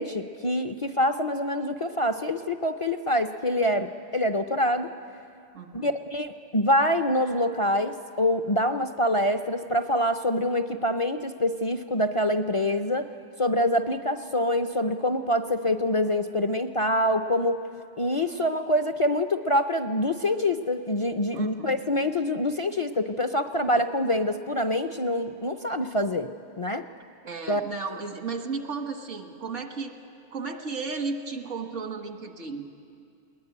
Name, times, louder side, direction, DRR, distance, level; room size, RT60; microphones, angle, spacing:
voice 1, 0.0-4.9 5.7-13.1 13.4-17.6 18.0-26.3 26.6-26.9 27.5-27.6, left 1 dB, 35° left, 7 dB, 0.5 m, -25 dB
voice 2, 5.5-5.9 21.3-21.8 23.7-23.8 27.2-29.9 30.3-32.7, right 4 dB, 90° right, 5 dB, 1.9 m, -34 dB
21.5 x 19.0 x 9.7 m, 2.4 s
omnidirectional pair, 1.2 m